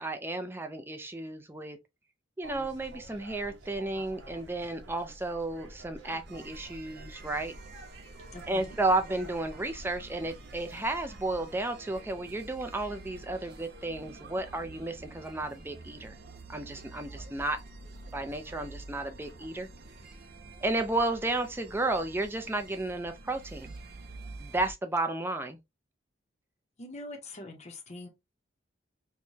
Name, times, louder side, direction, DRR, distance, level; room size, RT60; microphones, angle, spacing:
voice 1, 0.0-1.8 2.4-7.6 8.5-16.1 16.5-17.6 18.1-19.7 20.6-23.7 24.4-25.6, right 2 dB, 10° right, 0.5 m, -33 dB
sound 1, 2.4-11.5, right 2 dB, 75° right, 0.9 m, -49 dB
sound 2, 6.3-24.7, right 2 dB, 55° right, 0.6 m, -48 dB
voice 2, 8.3-8.8 26.8-28.1, left 2 dB, 35° left, 0.8 m, -43 dB
4.6 x 2.2 x 2.7 m
head